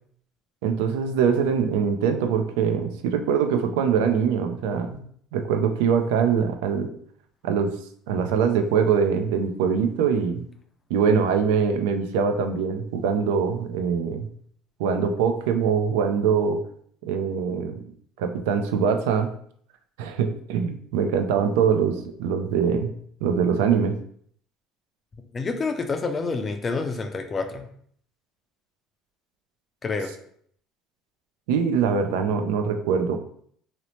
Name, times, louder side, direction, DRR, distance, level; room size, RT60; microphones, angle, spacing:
voice 1, 0.6-5.0 5.3-6.9 7.4-7.7 8.1-10.4 10.9-14.3 14.8-16.6 17.0-17.8 18.2-19.3 20.0-22.9 23.2-24.0 31.5-33.2, right 6 dB, 90° right, 6 dB, 0.3 m, -23 dB
voice 2, 25.3-27.7 29.8-30.1, left 4 dB, 25° left, 6 dB, 0.4 m, -28 dB
2.6 x 2.0 x 2.9 m, 0.62 s
cardioid pair, 125°, 0 cm